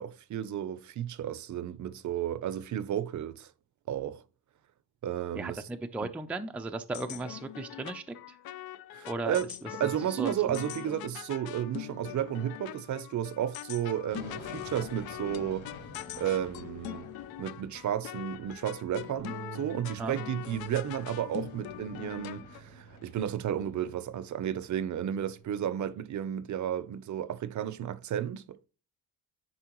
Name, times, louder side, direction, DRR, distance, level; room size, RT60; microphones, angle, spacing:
voice 1, 0.0-3.5 3.9-4.2 5.0-5.6 6.0-6.1 8.9-9.5 9.8-15.7 16.2-17.1 17.4-28.6, right 10 dB, 50° right, 0.6 m, -33 dB
voice 2, 5.3-8.2 9.1-9.4 9.8-10.6 20.0-20.2, right 2 dB, 5° right, 0.4 m, -36 dB
sound 1, 6.9-22.6, left 14 dB, 70° left, 0.5 m, -42 dB
sound 2, 14.1-25.3, left 2 dB, 45° left, 2.3 m, -52 dB
Bass guitar, 19.2-25.4, right 11 dB, 85° right, 0.8 m, -49 dB
10.0 x 4.2 x 3.0 m
cardioid pair, 140°, 38 cm